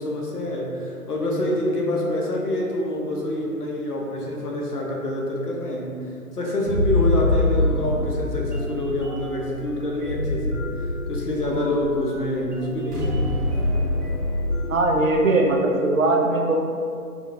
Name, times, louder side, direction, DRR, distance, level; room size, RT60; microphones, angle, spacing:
voice 1, 0.0-13.4, left 1 dB, 80° left, -1 dB, 0.9 m, -26 dB
sound 1, 6.7-15.2, left 1 dB, 80° right, 1.0 m, -25 dB
voice 2, 14.7-16.6, right 2 dB, 60° right, 1 dB, 0.6 m, -20 dB
5.6 x 2.2 x 2.6 m, 2.3 s
figure-of-eight pair, 145°, 45 cm